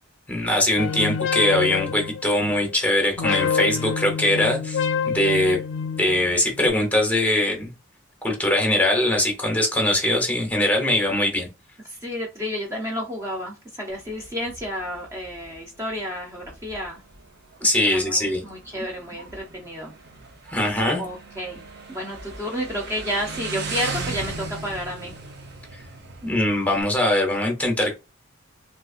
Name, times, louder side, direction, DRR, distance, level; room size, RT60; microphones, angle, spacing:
voice 1, 0.3-5.6 6.0-7.7 8.2-11.5 17.6-18.4 20.5-21.0 25.7-25.8 26.2-27.9, left 1 dB, 10° left, 1 dB, 0.9 m, -22 dB
sound 1, 0.8-2.7 3.2-6.7, left 6 dB, 65° left, 0.4 m, -27 dB
voice 2, 11.9-17.0 17.8-19.9 21.0-25.1, equal, 15° right, -1 dB, 0.6 m, -31 dB
Motorcycle, 13.9-26.8, right 3 dB, 55° right, 0.7 m, -38 dB
3.8 x 2.4 x 2.4 m, 0.27 s
head